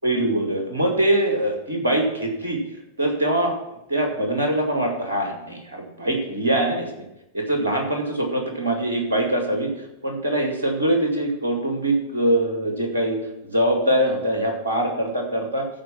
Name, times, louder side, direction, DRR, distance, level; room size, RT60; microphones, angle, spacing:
voice 1, 0.0-2.6 3.0-6.9 7.3-15.7, right 1 dB, 75° right, 2 dB, 2.1 m, -23 dB
14.0 x 4.7 x 5.9 m, 0.86 s
figure-of-eight pair, 90°, 0 cm